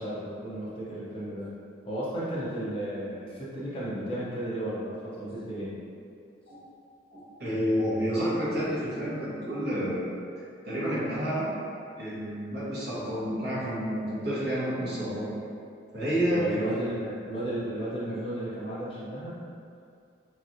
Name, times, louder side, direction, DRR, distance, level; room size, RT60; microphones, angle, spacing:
voice 1, 0.0-1.5 1.8-5.8 16.3-19.4, right 1 dB, 30° left, -8 dB, 0.5 m, -34 dB
voice 2, 7.1-10.1 10.6-11.5 12.0-15.3 15.9-16.6, equal, 55° right, -9 dB, 1.0 m, -29 dB
3.1 x 2.9 x 2.5 m, 2.4 s
head